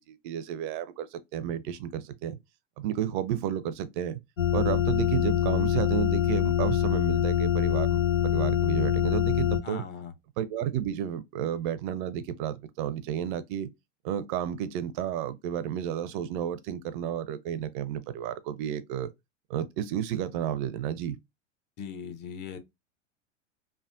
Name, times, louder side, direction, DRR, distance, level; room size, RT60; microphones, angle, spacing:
voice 1, 0.1-2.4 2.8-4.2 4.5-9.8 10.4-13.7 14.0-19.1 19.5-21.2, right 10 dB, 45° right, 0.4 m, -32 dB
sound 1, 4.4-9.6, left 10 dB, 90° left, 0.7 m, -25 dB
voice 2, 9.6-10.1 21.8-22.6, left 7 dB, 30° left, 0.6 m, -39 dB
3.3 x 2.2 x 2.5 m
hypercardioid pair, 90°, 38 cm